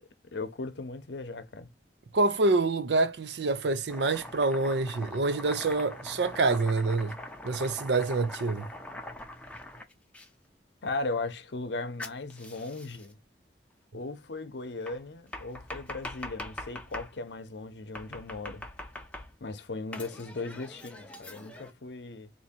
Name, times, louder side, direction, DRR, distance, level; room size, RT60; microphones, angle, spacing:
voice 1, 0.3-1.7 10.8-13.2 13.9-18.6 19.4-22.3, left 3 dB, 80° left, 0.7 m, -37 dB
voice 2, 2.1-7.2 7.4-8.7, right 3 dB, 75° right, 0.6 m, -26 dB
Domestic sounds home sounds, 3.9-10.3 12.0-13.1 14.9-17.1 17.9-19.5 19.9-21.7, left 1 dB, 5° left, 0.5 m, -43 dB
2.9 x 2.7 x 4.3 m
head